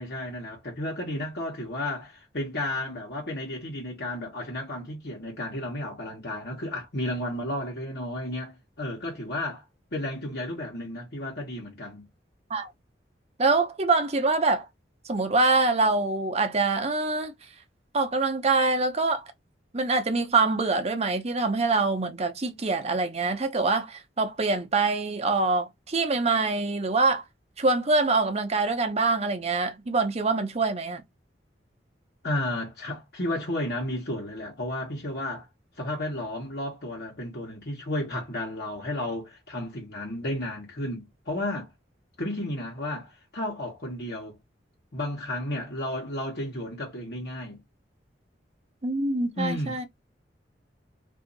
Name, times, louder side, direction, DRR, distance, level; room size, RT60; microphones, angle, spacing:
voice 1, 0.0-9.6 9.9-12.1 32.2-35.5 35.8-41.7 42.2-44.4 44.9-47.6 49.3-49.9, left 1 dB, 60° left, 1.2 m, -33 dB
voice 2, 13.4-14.7 15.1-17.3 17.9-19.2 19.7-27.2 27.6-31.0 48.8-49.9, right 3 dB, 35° right, 0.7 m, -25 dB
2.7 x 2.5 x 3.9 m
head